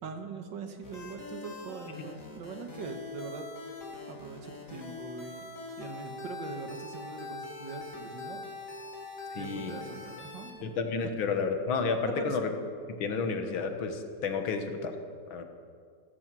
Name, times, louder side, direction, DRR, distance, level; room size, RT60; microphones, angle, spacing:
voice 1, 0.0-3.5 4.1-8.4 9.4-10.8 12.1-12.4, right 4 dB, 70° right, 6 dB, 1.9 m, -42 dB
sound 1, 0.8-10.6, left 3 dB, 40° left, 3.0 m, -43 dB
voice 2, 9.3-9.8 10.6-12.5 12.9-15.0 15.3-15.4, left 5 dB, 85° left, 6 dB, 2.1 m, -31 dB
15.5 x 14.0 x 6.1 m, 2.2 s
omnidirectional pair, 2.1 m